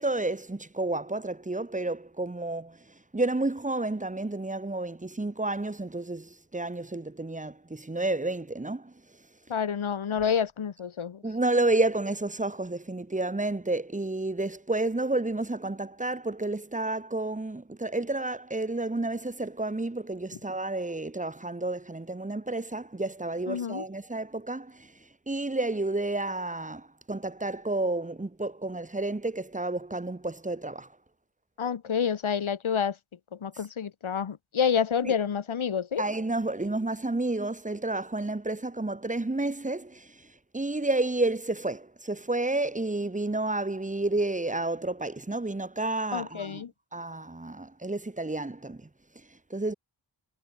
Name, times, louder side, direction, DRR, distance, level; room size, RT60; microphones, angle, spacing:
voice 1, 0.0-2.8 3.1-8.9 11.2-24.9 25.3-30.9 35.0-35.1 36.0-40.1 40.5-46.6 46.9-48.8 49.5-49.7, right 2 dB, 15° right, 1.3 m, -30 dB
voice 2, 9.5-11.2 23.5-23.8 31.6-33.0 33.3-36.1 46.1-46.7, left 7 dB, 80° left, 2.0 m, -28 dB
wide cardioid pair, 85°, 48 cm